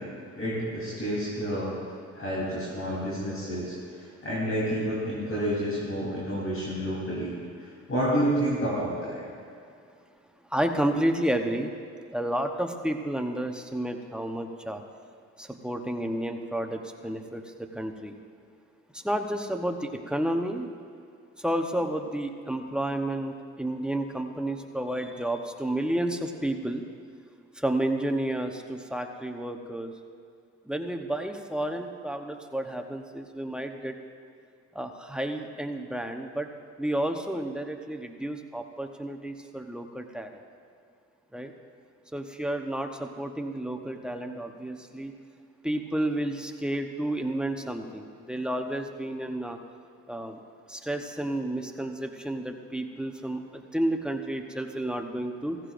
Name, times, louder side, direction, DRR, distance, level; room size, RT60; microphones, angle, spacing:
voice 1, 0.4-1.7 2.1-3.7 4.2-7.4 7.9-9.2, equal, 45° left, -7 dB, 3.6 m, -29 dB
voice 2, 10.5-11.7 12.1-14.8 15.4-18.1 18.9-20.7 21.4-26.8 27.5-29.9 30.7-33.9 34.7-36.5 36.8-40.3 41.3-41.5 42.1-45.1 45.6-49.6 50.1-50.4 50.7-55.6, right 1 dB, 5° right, 3 dB, 0.9 m, -31 dB
16.0 x 15.0 x 2.6 m, 2.3 s
cardioid pair, 90°, 30 cm